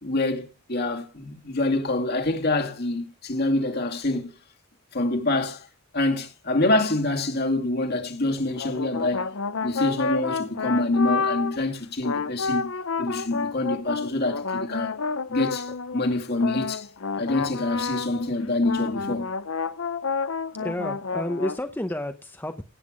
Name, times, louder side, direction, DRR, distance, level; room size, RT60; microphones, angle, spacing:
voice 1, 0.0-4.3 4.9-5.7 5.9-9.3 9.6-12.7 13.0-14.9 15.3-16.8 17.2-19.3, left 2 dB, 50° left, 2.3 m, -26 dB
sound 1, 8.5-11.7 12.0-18.4 18.6-21.6, left 4 dB, 70° left, 0.7 m, -30 dB
voice 2, 20.5-22.6, left 1 dB, 10° left, 0.8 m, -31 dB
17.0 x 8.2 x 5.0 m
head